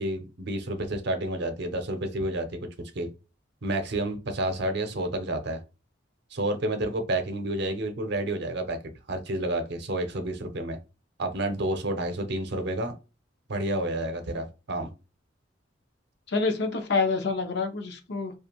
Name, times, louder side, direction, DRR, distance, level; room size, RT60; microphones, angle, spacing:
voice 1, 0.0-3.1 3.6-5.6 6.3-8.8 9.1-10.8 11.2-12.9 13.5-14.9, right 1 dB, 65° right, 0.6 m, -30 dB
voice 2, 16.3-18.3, left 4 dB, 65° left, 0.6 m, -27 dB
2.5 x 2.3 x 2.9 m
head